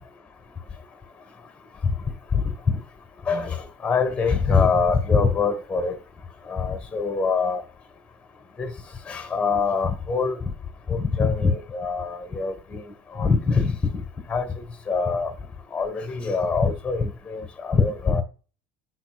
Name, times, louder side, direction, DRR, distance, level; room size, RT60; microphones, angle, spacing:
voice 1, 2.3-2.8 3.3-6.0 6.5-7.6 8.6-8.7 9.1-10.4 10.9-12.8 13.1-13.8 14.3-14.5 14.9-15.3 15.7-18.2, left 5 dB, 15° left, 1.5 m, -23 dB
9.9 x 4.3 x 2.5 m
supercardioid pair, 100°, 9 cm